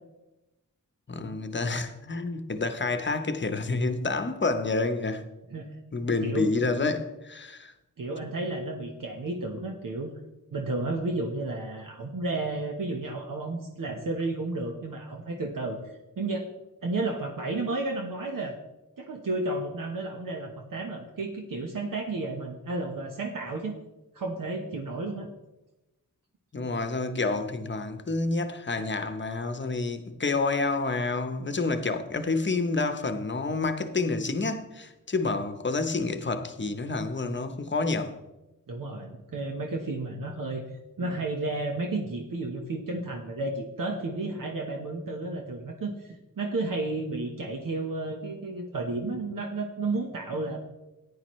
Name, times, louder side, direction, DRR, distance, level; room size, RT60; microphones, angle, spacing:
voice 1, 1.1-5.2 5.9-7.7 26.5-38.2, left 3 dB, 35° left, 0.9 m, -29 dB
voice 2, 6.2-6.5 8.0-10.1 10.5-15.8 16.2-16.5 16.8-18.5 19.0-23.7 24.1-25.3 38.7-40.6 41.0-50.6, right 2 dB, 70° right, 1.2 m, -32 dB
14.5 x 9.8 x 3.2 m
wide cardioid pair, 110°, 34 cm